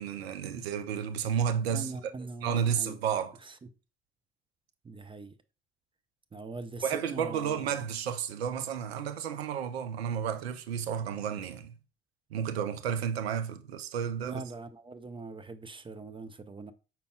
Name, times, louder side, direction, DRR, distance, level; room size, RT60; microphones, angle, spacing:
voice 1, 0.0-1.9 2.4-3.3 6.8-11.7 12.3-14.4, right 8 dB, 85° right, 0.5 m, -32 dB
voice 2, 1.7-3.0 3.4-3.7 4.8-5.4 6.3-7.7 14.2-16.7, right 3 dB, 15° right, 0.4 m, -42 dB
5.2 x 4.4 x 2.3 m
hypercardioid pair, 55°, 31 cm